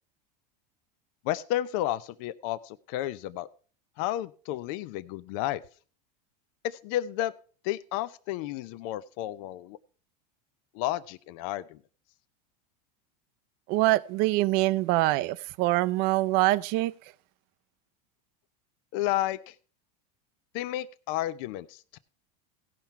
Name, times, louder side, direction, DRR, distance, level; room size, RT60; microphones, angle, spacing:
voice 1, 1.2-3.5 4.0-5.6 6.6-7.3 7.6-9.8 10.7-11.8 18.9-19.5 20.5-22.0, left 14 dB, 55° left, 0.6 m, -32 dB
voice 2, 13.7-16.9, right 18 dB, 50° right, 0.5 m, -24 dB
16.5 x 5.9 x 4.5 m
supercardioid pair, 130°, 21 cm